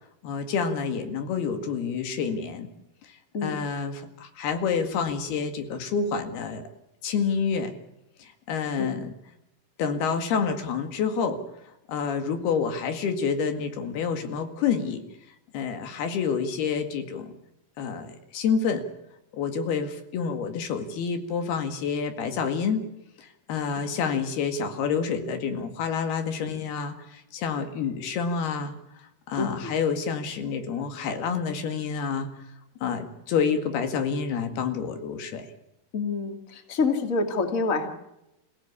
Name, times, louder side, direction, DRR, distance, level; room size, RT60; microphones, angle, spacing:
voice 1, 0.2-2.7 3.4-6.6 7.0-7.7 8.2-9.1 9.8-11.4 11.9-15.0 15.5-17.3 17.8-18.8 19.3-22.8 23.2-28.7 29.3-32.3 32.8-35.5, left 6 dB, 90° left, 7 dB, 4.0 m, -28 dB
voice 2, 29.4-29.8 35.9-37.9, left 3 dB, 25° left, 6 dB, 2.3 m, -27 dB
27.5 x 16.5 x 8.4 m, 0.86 s
omnidirectional pair, 4.4 m